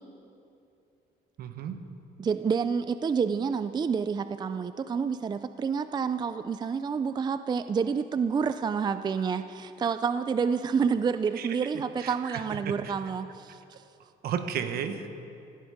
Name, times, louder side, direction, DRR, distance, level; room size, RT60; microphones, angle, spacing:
voice 1, 1.4-1.8 11.4-11.5 12.0-12.9 14.2-15.1, right 8 dB, 65° right, 8 dB, 1.3 m, -33 dB
voice 2, 2.2-13.6, right 6 dB, 25° right, 11 dB, 0.4 m, -28 dB
16.5 x 16.5 x 5.1 m, 2.7 s
cardioid pair, 110°, 17 cm